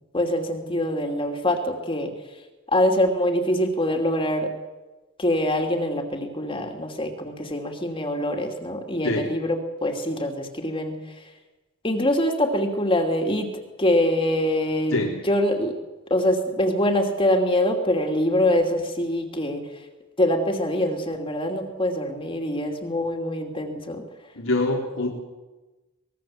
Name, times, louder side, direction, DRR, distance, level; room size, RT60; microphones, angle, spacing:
voice 1, 0.1-2.1 2.7-4.5 5.2-10.9 11.8-13.5 13.8-15.0 15.2-15.8 16.1-19.7 20.2-24.0, left 1 dB, 25° left, 3 dB, 2.7 m, -24 dB
voice 2, 24.4-25.1, left 2 dB, 90° left, -1 dB, 3.8 m, -24 dB
24.5 x 20.5 x 7.6 m, 1.2 s
head